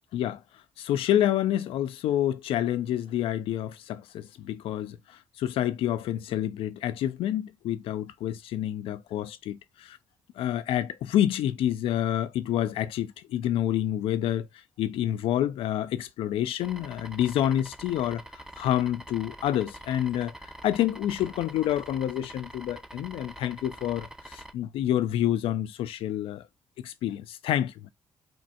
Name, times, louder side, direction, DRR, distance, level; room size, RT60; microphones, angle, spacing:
voice 1, 0.8-10.0 10.4-20.3 20.6-26.5 26.8-27.9, left 11 dB, 75° left, 0.3 m, -28 dB
sound 1, 16.6-24.5, right 1 dB, 5° right, 0.4 m, -45 dB
3.4 x 2.1 x 2.7 m
supercardioid pair, 55°, 10 cm